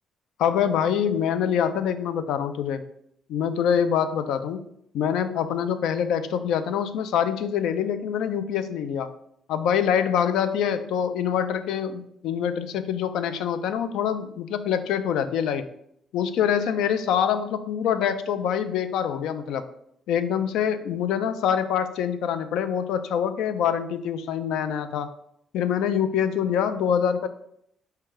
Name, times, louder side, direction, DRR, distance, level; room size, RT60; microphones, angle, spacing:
voice 1, 0.4-2.8 3.3-4.6 4.9-9.1 9.5-15.6 16.1-19.7 20.1-25.1 25.5-27.3, left 8 dB, 85° left, 11 dB, 0.3 m, -25 dB
4.6 x 2.2 x 4.7 m, 0.74 s
cardioid pair, 90°, 0 cm